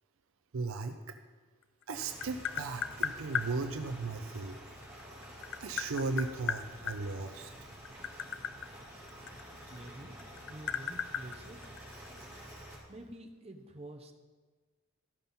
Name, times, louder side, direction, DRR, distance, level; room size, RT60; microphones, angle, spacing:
voice 1, 0.5-1.2 1.9-4.6 5.6-7.5, right 3 dB, 60° right, 6 dB, 0.5 m, -36 dB
Tap, 1.6-3.5 4.8-7.0 7.7-9.9 10.2-12.2, left 8 dB, 55° left, 0.4 m, -36 dB
sound 1, 1.9-12.8, equal, 10° right, 2.7 m, -49 dB
voice 2, 9.7-10.2 10.5-11.8 12.9-14.1, right 1 dB, 25° right, 4 dB, 0.8 m, -48 dB
13.5 x 5.5 x 5.5 m, 1.4 s
head